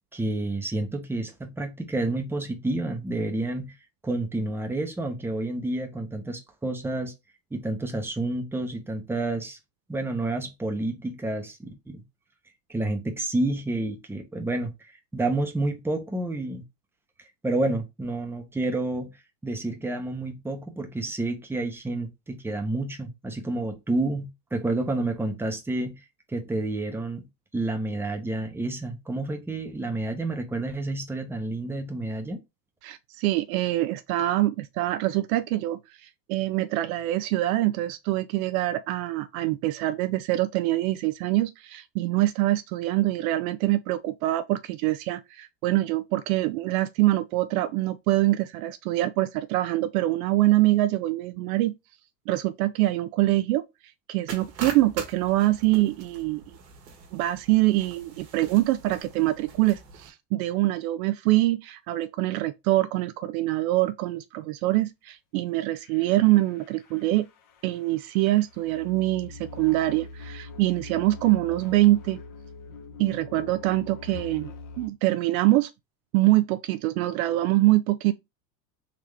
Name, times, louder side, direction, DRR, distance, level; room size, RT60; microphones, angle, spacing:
voice 1, 0.1-3.7 4.0-7.1 7.5-9.6 9.9-12.0 12.7-16.6 17.4-19.1 19.4-26.0 26.3-27.3 27.5-32.4, right 2 dB, 5° right, 0.8 m, -29 dB
voice 2, 32.8-51.7 52.3-53.6 54.1-56.4 57.1-67.3 67.6-72.2 73.0-75.7 76.1-78.1, right 17 dB, 60° right, 0.5 m, -24 dB
sound 1, 54.3-60.1, right 5 dB, 80° right, 1.3 m, -42 dB
sound 2, 65.7-74.9, left 3 dB, 40° left, 0.9 m, -43 dB
3.8 x 2.9 x 3.3 m
hypercardioid pair, 95°, 48 cm